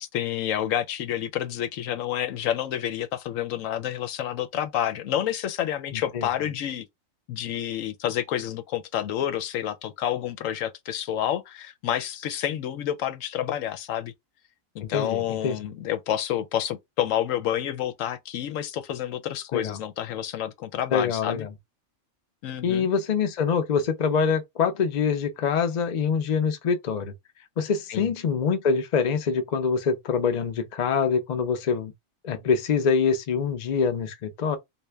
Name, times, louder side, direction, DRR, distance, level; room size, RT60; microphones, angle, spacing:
voice 1, 0.0-6.9 7.3-14.1 14.7-21.5 22.4-22.9 27.9-28.1, left 11 dB, 90° left, 1.0 m, -29 dB
voice 2, 5.9-6.3 14.8-15.6 19.5-19.8 20.9-21.5 22.6-27.1 27.6-31.9 32.2-34.6, left 6 dB, 50° left, 0.5 m, -25 dB
3.2 x 2.5 x 3.4 m
omnidirectional pair, 1.3 m